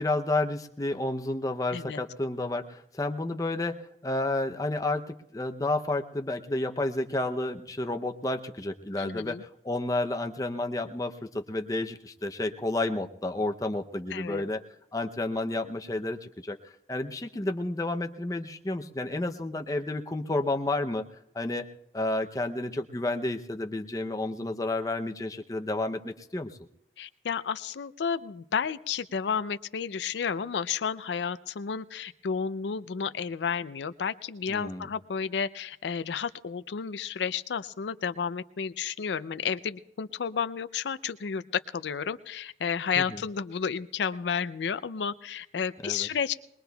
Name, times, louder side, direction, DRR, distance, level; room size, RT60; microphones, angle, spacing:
voice 1, 0.0-14.6 14.9-21.0 21.3-21.7 21.9-26.6 34.5-34.9 43.0-43.2 45.8-46.1, left 2 dB, 20° left, 5 dB, 0.6 m, -31 dB
voice 2, 9.0-9.4 14.1-14.5 27.0-41.4 41.7-46.3, left 6 dB, 85° left, 14 dB, 0.4 m, -32 dB
21.5 x 21.0 x 2.3 m, 0.81 s
head